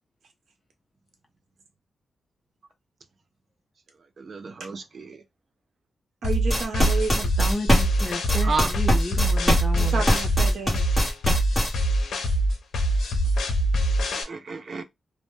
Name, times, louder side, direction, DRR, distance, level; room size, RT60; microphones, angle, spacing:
voice 1, 4.2-5.2 8.4-8.7 14.2-14.8, right 4 dB, 40° right, 0.3 m, -31 dB
sound 1, 6.2-14.2, right 1 dB, 85° left, 0.5 m, -24 dB
voice 2, 6.2-7.3 9.7-10.9, right 4 dB, 75° right, 0.7 m, -31 dB
sound 2, 6.3-11.7, equal, 5° left, 0.9 m, -22 dB
voice 3, 7.4-10.0, left 1 dB, 20° left, 0.5 m, -32 dB
2.1 x 2.0 x 3.0 m
wide cardioid pair, 180°, 0 cm